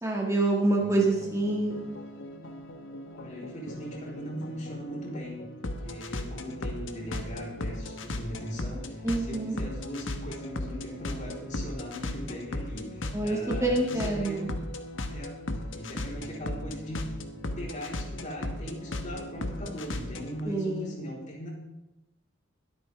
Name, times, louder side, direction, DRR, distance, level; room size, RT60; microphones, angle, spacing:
voice 1, 0.0-1.8 9.0-9.6 13.1-14.5 20.5-20.9, right 2 dB, 15° right, -1 dB, 1.8 m, -27 dB
sound 1, 0.8-20.4, left 1 dB, 80° left, 1.2 m, -37 dB
voice 2, 3.1-5.5 5.8-14.6 15.1-15.4 15.7-17.1 17.6-21.5, equal, 40° left, -3 dB, 3.9 m, -39 dB
22.0 x 8.8 x 3.5 m, 0.98 s
head